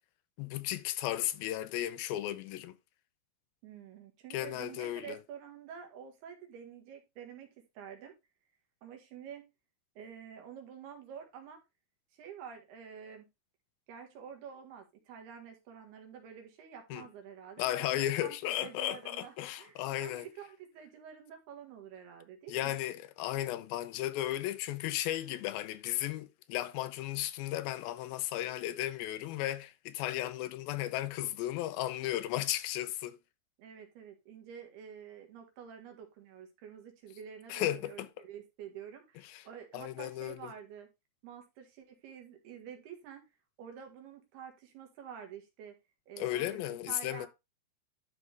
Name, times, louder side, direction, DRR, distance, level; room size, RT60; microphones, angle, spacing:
voice 1, 0.4-2.8 4.3-5.2 16.9-17.0 17.6-20.3 22.5-33.2 37.5-38.1 39.3-39.4 39.7-40.4 46.2-47.3, left 13 dB, 80° left, 2.3 m, -35 dB
voice 2, 3.6-7.5 7.8-8.2 8.8-9.4 10.0-11.6 12.1-13.3 13.9-22.8 33.6-40.9 41.2-43.2 43.6-45.8 46.1-47.3, right 8 dB, 85° right, 3.7 m, -48 dB
12.0 x 4.7 x 3.4 m
omnidirectional pair, 4.4 m